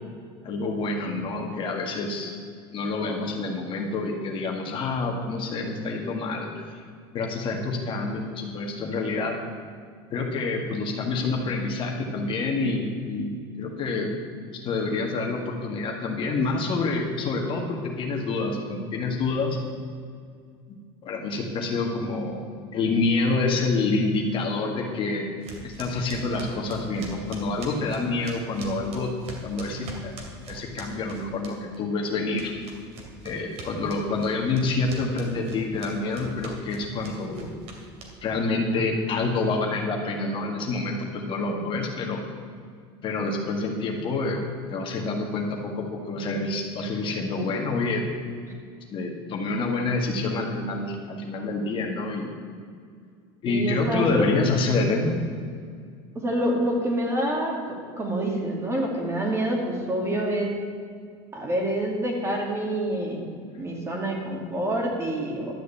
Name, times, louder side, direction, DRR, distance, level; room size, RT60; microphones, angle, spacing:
voice 1, 0.4-2.3 2.7-6.8 7.1-9.4 10.1-14.1 14.5-19.6 21.0-22.5 22.7-25.3 25.6-29.1 29.4-30.1 30.5-32.5 33.2-37.5 38.2-42.2 43.0-44.4 44.7-48.0 48.9-52.3 53.4-55.1, left 3 dB, 40° left, 1 dB, 1.9 m, -27 dB
sound 1, 25.4-31.8 32.1-38.4, right 3 dB, 50° right, 2.6 m, -42 dB
voice 2, 53.5-54.3 56.1-60.6 61.3-63.2 63.6-65.5, right 1 dB, 20° right, 0 dB, 2.4 m, -27 dB
12.0 x 6.4 x 8.4 m, 2.1 s
supercardioid pair, 130°, 14 cm